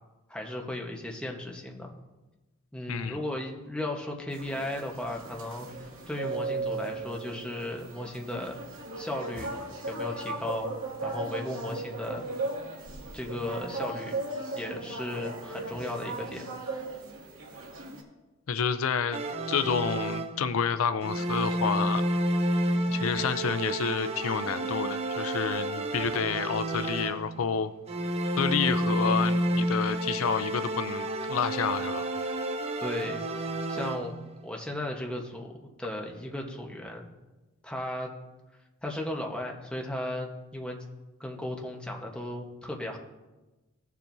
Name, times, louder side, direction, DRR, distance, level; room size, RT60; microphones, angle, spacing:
voice 1, 0.3-1.9 2.7-8.6 9.0-9.6 9.9-10.7 11.0-12.2 13.1-14.2 14.5-16.4 32.8-37.1 37.6-38.1 38.8-40.8 41.2-43.0, left 1 dB, 5° left, 0 dB, 1.1 m, -36 dB
sound 1, 4.3-18.0, right 3 dB, 85° right, 2.2 m, -37 dB
voice 2, 18.5-22.0 22.9-27.7 28.4-32.1, left 6 dB, 80° left, 11 dB, 0.5 m, -29 dB
sound 2, 19.1-20.6 21.0-27.5 27.9-34.3, right 1 dB, 30° right, 0.6 m, -30 dB
16.5 x 7.3 x 2.7 m, 1.1 s
head